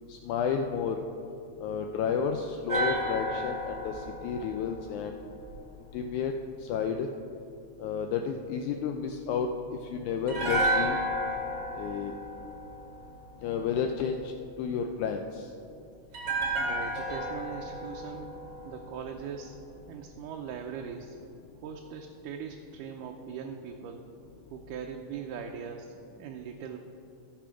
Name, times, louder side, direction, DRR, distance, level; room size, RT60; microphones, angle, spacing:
voice 1, 0.1-1.0 1.6-5.2 5.9-6.3 6.6-7.1 7.8-9.5 9.8-11.0 11.7-12.1 13.4-14.3 14.6-15.5, left 6 dB, 80° left, 4 dB, 1.8 m, -31 dB
sound 1, 2.7-5.9 10.3-13.5 16.1-19.3 19.6-19.8, right 1 dB, 30° right, 1.3 m, -32 dB
voice 2, 16.6-18.3 18.6-19.6 19.9-21.2 21.6-24.0 24.5-26.8, right 7 dB, 85° right, 2 dB, 2.1 m, -40 dB
14.0 x 5.7 x 5.0 m, 2.7 s
omnidirectional pair, 3.7 m